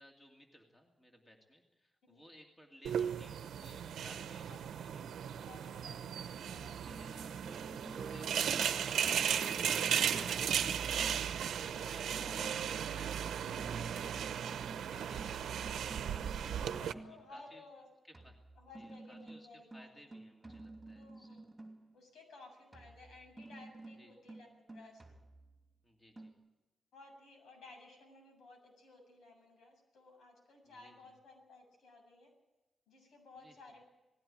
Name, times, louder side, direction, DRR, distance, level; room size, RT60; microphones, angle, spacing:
voice 1, 0.0-5.1 5.6-6.0 6.7-11.5 11.8-14.0 14.6-16.4 17.1-17.6 18.0-18.3 18.7-19.5 19.7-21.3 24.0-24.1 25.8-26.3 30.6-31.0 33.4-33.5, equal, 15° left, 2 dB, 2.5 m, -60 dB
sound 1, 2.8-16.9, right 8 dB, 90° right, 0.9 m, -36 dB
voice 2, 4.5-4.9 5.4-6.9 8.4-8.8 10.4-10.6 12.2-12.5 15.0-15.4 16.5-17.9 18.6-19.9 20.5-20.7 20.9-21.4 21.9-24.5 24.7-25.0 26.9-32.3 32.9-33.8, left 3 dB, 80° left, 2 dB, 7.5 m, -57 dB
sound 2, 6.8-8.3 9.0-12.8 13.6-17.3 18.1-22.0 22.7-25.7 26.2-26.3, right 2 dB, 15° right, 2.9 m, -52 dB
sound 3, 7.5-12.9, right 5 dB, 45° right, 1.2 m, -49 dB
19.0 x 16.0 x 8.9 m, 1.1 s
wide cardioid pair, 150°, 0 cm